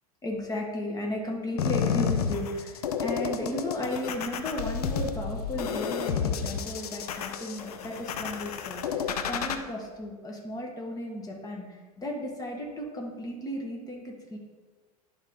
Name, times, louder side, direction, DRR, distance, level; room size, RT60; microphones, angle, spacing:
voice 1, 0.2-14.4, left 1 dB, 20° left, 0 dB, 1.6 m, -35 dB
sound 1, 1.6-9.6, left 7 dB, 80° left, 0.6 m, -31 dB
11.5 x 3.8 x 3.6 m, 1.4 s
hypercardioid pair, 100°, 19 cm